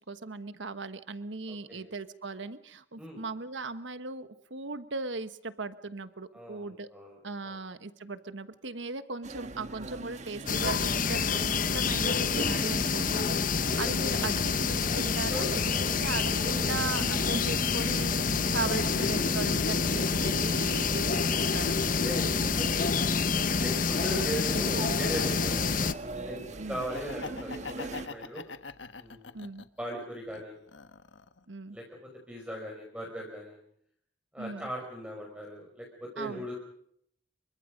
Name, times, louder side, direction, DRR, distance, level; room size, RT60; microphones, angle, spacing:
voice 1, 0.0-6.9 7.2-15.6 16.0-21.8 26.6-26.8 29.3-29.6 31.5-31.8 34.4-34.7 36.2-36.5, right 3 dB, 85° right, 12 dB, 1.3 m, -38 dB
voice 2, 1.5-1.9 3.0-3.2 6.3-7.2 7.4-7.6 13.7-13.9 15.3-16.0 16.4-16.7 22.0-23.2 23.4-25.9 26.2-26.4 26.7-28.4 29.0-29.3 29.8-30.6 31.7-33.6 34.3-36.5, equal, 5° right, -1 dB, 5.3 m, -39 dB
sound 1, 9.2-28.1, right 2 dB, 40° right, 1.6 m, -40 dB
sound 2, 10.5-25.9, left 5 dB, 45° left, 0.9 m, -28 dB
Laughter, 26.7-29.8 30.3-31.4, left 4 dB, 85° left, 1.3 m, -42 dB
30.0 x 24.0 x 5.3 m, 0.68 s
head